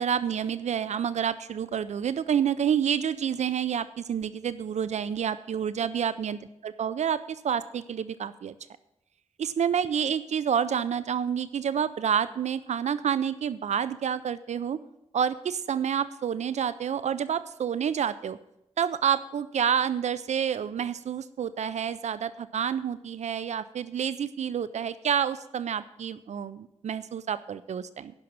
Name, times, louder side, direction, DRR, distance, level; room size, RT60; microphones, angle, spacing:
voice 1, 0.0-8.5 9.4-14.8 15.1-18.4 18.8-28.1, right 8 dB, 70° right, 15 dB, 0.4 m, -28 dB
10.5 x 6.1 x 8.8 m, 0.85 s
wide cardioid pair, 85°, 12 cm